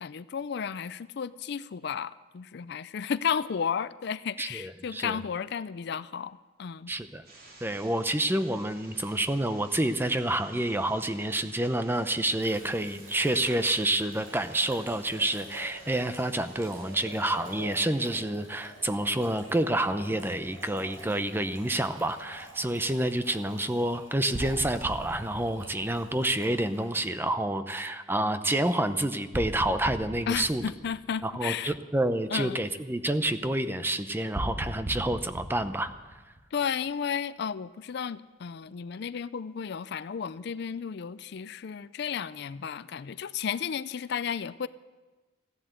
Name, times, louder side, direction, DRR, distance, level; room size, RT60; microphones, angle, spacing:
voice 1, 0.0-6.9 30.3-31.7 32.3-32.6 36.5-44.7, left 7 dB, 55° left, 16 dB, 0.4 m, -33 dB
voice 2, 4.4-5.2 6.9-7.2 7.6-30.6 31.2-35.9, right 1 dB, 10° right, 10 dB, 0.6 m, -28 dB
sound 1, 7.2-17.3, right 2 dB, 50° right, 3.1 m, -54 dB
sound 2, 12.2-27.1, right 1 dB, 90° right, 6.0 m, -48 dB
sound 3, 24.3-26.4 29.3-31.4 34.3-36.9, equal, 30° right, 1.4 m, -38 dB
15.5 x 11.5 x 8.0 m, 1.3 s
head